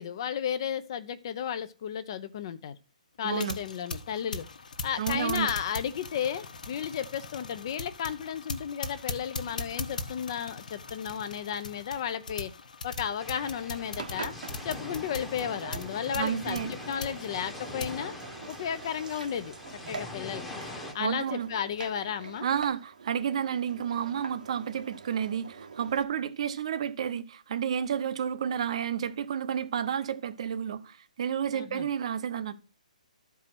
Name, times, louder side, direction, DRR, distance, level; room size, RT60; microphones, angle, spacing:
voice 1, 0.0-2.8 3.2-4.5 4.8-12.5 12.8-14.3 14.6-18.1 18.5-19.5 19.9-20.4 20.9-22.5 31.5-31.9, left 8 dB, 35° left, 0.7 m, -33 dB
voice 2, 3.2-3.6 5.0-5.5 16.1-16.7 21.0-21.5 22.4-32.5, right 8 dB, 45° right, 0.8 m, -31 dB
sound 1, 3.3-18.0, left 3 dB, 75° left, 1.3 m, -40 dB
sound 2, 13.2-20.9, left 2 dB, 5° left, 1.1 m, -43 dB
Engine, 13.9-26.0, right 5 dB, 80° right, 1.3 m, -45 dB
12.5 x 4.7 x 6.0 m
hypercardioid pair, 165°, 4 cm